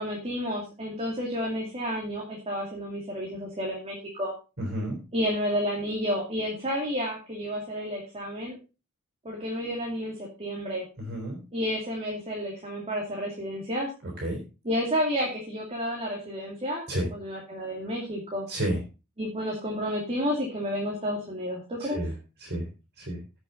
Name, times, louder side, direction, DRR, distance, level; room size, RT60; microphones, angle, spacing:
voice 1, 0.0-4.3 5.1-8.6 9.2-10.8 11.5-13.9 14.6-16.8 17.1-18.5 19.2-22.0, equal, 30° right, -1 dB, 2.5 m, -31 dB
voice 2, 4.6-5.0 11.0-11.4 14.0-14.4 16.9-17.1 18.5-18.8 21.8-22.1 22.4-22.6 23.0-23.2, right 1 dB, 50° right, 1 dB, 4.0 m, -30 dB
15.5 x 6.3 x 3.9 m, 0.30 s
head